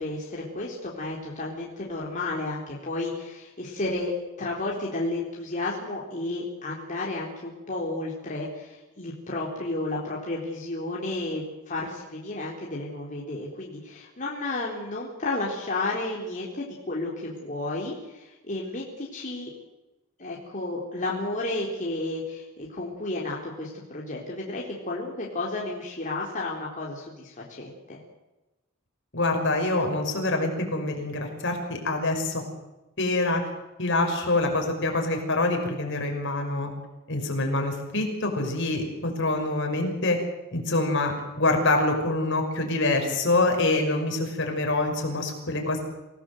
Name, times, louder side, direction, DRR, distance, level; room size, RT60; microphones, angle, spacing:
voice 1, 0.0-4.1 4.4-19.5 20.2-28.0, left 2 dB, 35° left, -3 dB, 4.1 m, -32 dB
voice 2, 29.1-32.4 33.0-33.4 33.8-36.7 37.1-40.2 40.5-45.8, left 2 dB, 60° left, 3 dB, 5.8 m, -25 dB
27.5 x 17.5 x 7.9 m, 1.0 s
head